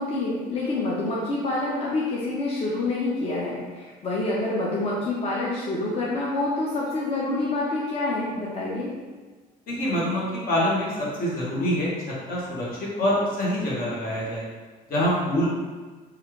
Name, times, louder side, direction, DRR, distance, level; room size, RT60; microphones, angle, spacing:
voice 1, 0.0-8.9, left 2 dB, 35° left, -6 dB, 0.6 m, -27 dB
voice 2, 9.7-14.5 14.9-15.6, equal, 60° left, -6 dB, 1.1 m, -25 dB
3.1 x 2.4 x 3.0 m, 1.4 s
cardioid pair, 110°, 17 cm